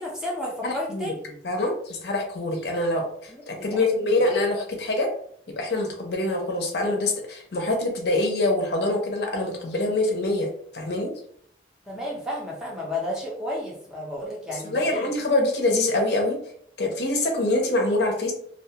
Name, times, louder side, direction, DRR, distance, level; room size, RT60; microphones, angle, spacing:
voice 1, 0.0-1.4 3.3-3.8 11.9-15.1, left 1 dB, 5° right, -4 dB, 0.6 m, -32 dB
voice 2, 0.6-1.1 1.4-5.1 5.6-10.5 10.7-11.1 14.7-16.4 16.8-18.3, left 2 dB, 65° left, 1 dB, 0.6 m, -25 dB
2.3 x 2.3 x 2.7 m, 0.64 s
head